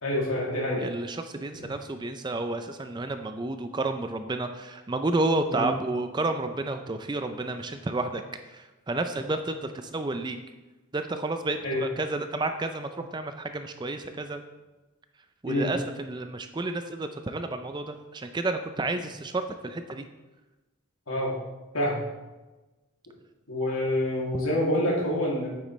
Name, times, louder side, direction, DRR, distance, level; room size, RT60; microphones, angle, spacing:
voice 1, 0.0-0.8 5.5-5.6 11.6-11.8 15.5-15.7 21.1-21.3 21.7-22.0 23.5-25.5, left 1 dB, 80° left, -4 dB, 2.6 m, -27 dB
voice 2, 0.8-8.2 8.5-10.4 10.9-14.4 15.4-20.1, right 2 dB, 20° right, 8 dB, 0.4 m, -31 dB
9.0 x 7.6 x 3.2 m, 1.1 s
head